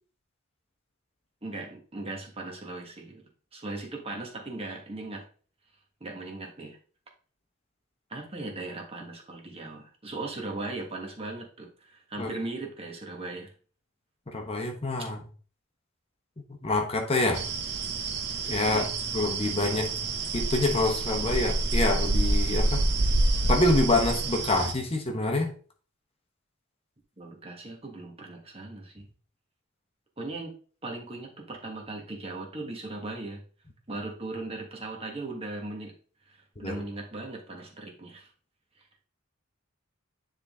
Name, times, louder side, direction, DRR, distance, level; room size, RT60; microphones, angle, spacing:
voice 1, 1.4-3.2 3.5-5.3 6.0-6.8 8.1-13.5 18.7-18.9 27.2-29.1 30.2-30.5 30.8-33.4 33.9-35.9 36.2-38.3 38.8-38.9, right 2 dB, 30° right, 1 dB, 1.5 m, -38 dB
voice 2, 14.3-15.2 16.6-17.5 18.5-18.9 19.1-19.9 20.3-22.8 23.5-25.5 36.6-36.8, left 2 dB, 30° left, 2 dB, 1.1 m, -26 dB
sound 1, 17.3-24.7, right 2 dB, 55° right, 0.8 m, -27 dB
9.8 x 3.7 x 3.7 m, 0.41 s
head